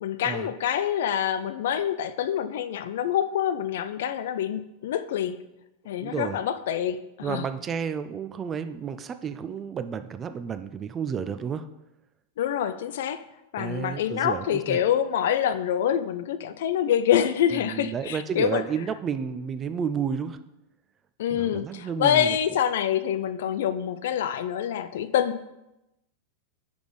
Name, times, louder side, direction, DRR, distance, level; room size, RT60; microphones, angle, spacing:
voice 1, 0.0-5.4 5.9-7.5 12.4-13.2 13.5-18.6 21.2-25.4, left 9 dB, 55° left, 13 dB, 0.4 m, -26 dB
voice 2, 6.0-6.4 7.2-11.7 13.6-14.8 17.5-20.4 21.3-22.4, right 7 dB, 25° right, 11 dB, 0.4 m, -31 dB
5.1 x 5.0 x 4.9 m, 0.92 s
figure-of-eight pair, 90°, 0 cm